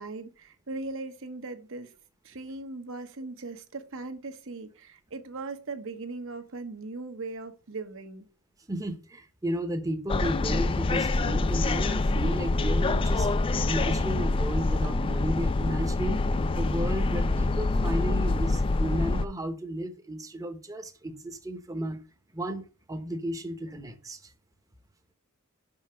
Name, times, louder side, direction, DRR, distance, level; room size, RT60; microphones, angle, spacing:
voice 1, 0.0-1.9 2.2-8.3, right 3 dB, 60° right, 1.0 m, -39 dB
voice 2, 8.7-13.3 13.6-16.2 16.5-22.0 22.3-24.3, right 1 dB, 15° right, 0.8 m, -34 dB
sound 1, 10.1-19.3, left 2 dB, 25° left, 0.3 m, -26 dB
5.8 x 5.6 x 5.6 m
head